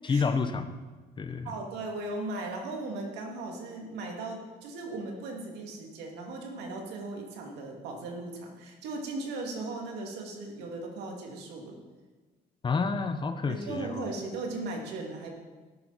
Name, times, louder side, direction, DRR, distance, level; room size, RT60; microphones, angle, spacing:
voice 1, 0.0-0.7 1.2-1.5 12.6-14.1, left 4 dB, 30° left, 10 dB, 0.8 m, -29 dB
voice 2, 1.4-11.8 13.5-15.3, right 2 dB, 85° right, 1 dB, 2.3 m, -37 dB
13.5 x 10.5 x 4.1 m, 1.3 s
cardioid pair, 110°, 17 cm